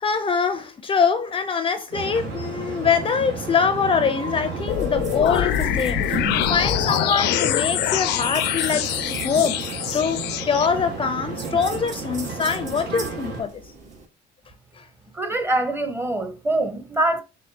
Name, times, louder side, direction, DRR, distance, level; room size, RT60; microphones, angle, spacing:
voice 1, 0.0-13.5 14.8-14.9, left 6 dB, 30° left, 0.5 m, -24 dB
sound 1, 1.9-13.4, right 4 dB, 80° right, 2.0 m, -32 dB
sound 2, 4.7-10.7, left 13 dB, 85° left, 0.4 m, -24 dB
sound 3, 4.7-14.0, right 3 dB, 45° right, 1.1 m, -41 dB
voice 2, 15.1-17.2, right 2 dB, 15° right, 0.9 m, -24 dB
4.4 x 3.1 x 2.7 m
cardioid pair, 110°, 17 cm